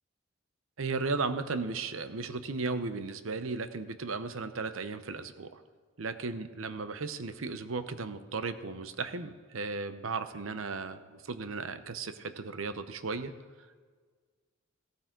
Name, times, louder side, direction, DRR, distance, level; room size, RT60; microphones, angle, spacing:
voice 1, 0.8-5.6 6.0-13.3, right 4 dB, 85° right, 11 dB, 0.8 m, -35 dB
16.0 x 13.5 x 3.8 m, 1.5 s
head